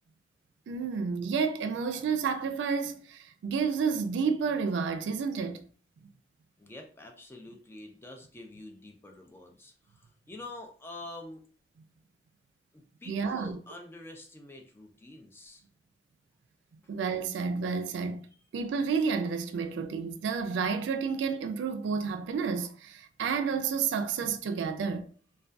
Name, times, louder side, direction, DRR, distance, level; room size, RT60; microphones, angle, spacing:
voice 1, 0.7-5.6 13.1-13.6 16.9-18.3 18.5-25.1, right 5 dB, 90° right, 0.3 m, -30 dB
voice 2, 6.6-11.4 12.7-15.6, left 2 dB, 15° left, 0.3 m, -47 dB
2.5 x 2.2 x 2.2 m
head